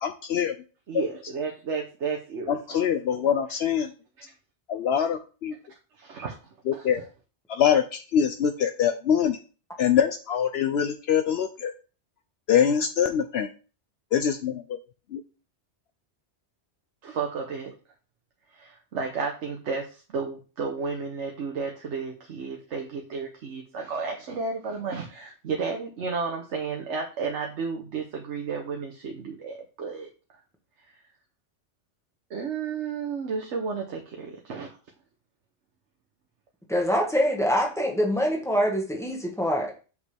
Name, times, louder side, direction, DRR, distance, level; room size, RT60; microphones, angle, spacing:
voice 1, 0.0-0.6 0.9-1.0 2.5-3.9 4.7-5.6 6.6-7.1 7.5-9.4 9.8-11.7 12.5-13.5 14.1-14.8 15.1-15.2, left 8 dB, 70° left, 7 dB, 0.8 m, -24 dB
voice 2, 0.9-2.6 6.0-6.4 17.0-17.7 18.5-30.1 32.3-34.7, right 5 dB, 80° right, 2 dB, 1.2 m, -32 dB
voice 3, 36.7-39.8, equal, 5° left, 0 dB, 1.4 m, -25 dB
6.6 x 5.2 x 3.4 m, 0.36 s
omnidirectional pair, 1.2 m